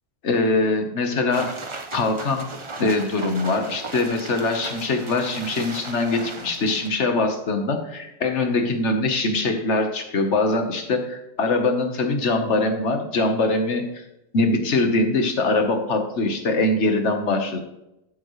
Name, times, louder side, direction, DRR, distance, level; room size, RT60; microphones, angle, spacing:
voice 1, 0.2-1.5 1.9-2.5 2.8-14.0 14.3-17.6, left 2 dB, 50° left, 5 dB, 1.5 m, -22 dB
sound 1, 1.3-6.9, right 3 dB, 25° right, 0.7 m, -36 dB
13.5 x 7.3 x 3.2 m, 0.88 s
omnidirectional pair, 1.6 m